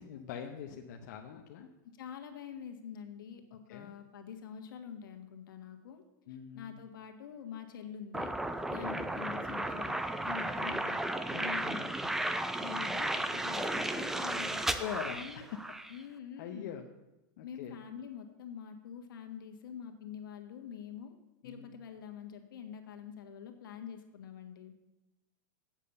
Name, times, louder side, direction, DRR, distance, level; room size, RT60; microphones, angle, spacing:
voice 1, 0.0-1.7 3.7-3.9 6.3-6.8 8.8-9.0 11.3-12.1 13.8-14.0 14.5-15.5 16.4-16.8 17.4-17.8 21.4-21.8, left 8 dB, 60° left, 3 dB, 0.9 m, -44 dB
voice 2, 1.8-6.0 6.5-8.3 8.7-10.0 10.2-11.8 12.6-14.6 15.1-15.5 15.9-16.8 17.4-21.1 21.4-24.7, left 8 dB, 80° left, 5 dB, 1.7 m, -46 dB
sound 1, 8.1-15.9, right 1 dB, 5° right, 0.4 m, -34 dB
8.7 x 7.3 x 6.8 m, 0.99 s
supercardioid pair, 155°, 11 cm